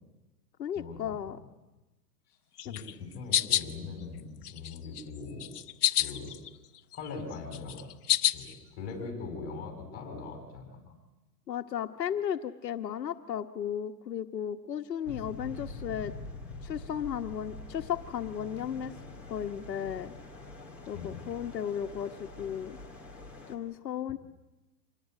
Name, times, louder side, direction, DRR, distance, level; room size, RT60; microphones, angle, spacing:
voice 1, 0.6-1.4 11.5-16.1 16.6-18.9 19.3-20.1 20.9-22.8 23.5-24.2, left 9 dB, 80° left, 5 dB, 1.5 m, -35 dB
sound 1, 2.6-3.7 4.2-5.0 5.4-6.5 6.8-8.5, left 11 dB, 65° left, 1.3 m, -28 dB
voice 2, 2.6-5.5 6.0-6.4 6.9-7.9 8.3-10.8 20.9-21.2, left 4 dB, 20° left, 3 dB, 6.6 m, -41 dB
sound 2, 15.0-23.6, left 2 dB, 5° right, 2.3 m, -45 dB
26.5 x 20.0 x 9.3 m, 1.1 s
hypercardioid pair, 175°, 49 cm